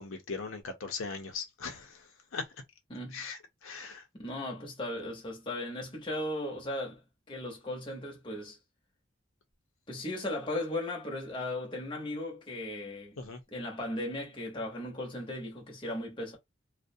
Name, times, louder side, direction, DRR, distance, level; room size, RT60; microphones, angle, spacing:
voice 1, 0.0-2.0 2.3-2.4 3.1-4.0 13.2-13.4, left 4 dB, 85° left, 0.6 m, -39 dB
voice 2, 2.9-3.2 4.1-7.0 7.3-8.6 9.9-13.2 13.5-16.4, left 1 dB, 25° left, 0.8 m, -37 dB
2.4 x 2.1 x 2.6 m
head